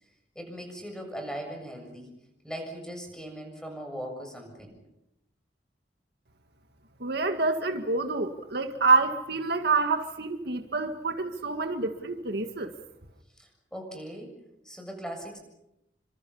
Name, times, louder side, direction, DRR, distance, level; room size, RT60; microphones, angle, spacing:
voice 1, 0.4-2.1 2.4-4.8 13.4-14.4 14.6-15.4, equal, 5° left, 4 dB, 7.1 m, -39 dB
voice 2, 7.0-12.7, right 3 dB, 65° right, 6 dB, 1.9 m, -27 dB
29.0 x 25.5 x 5.7 m, 0.85 s
head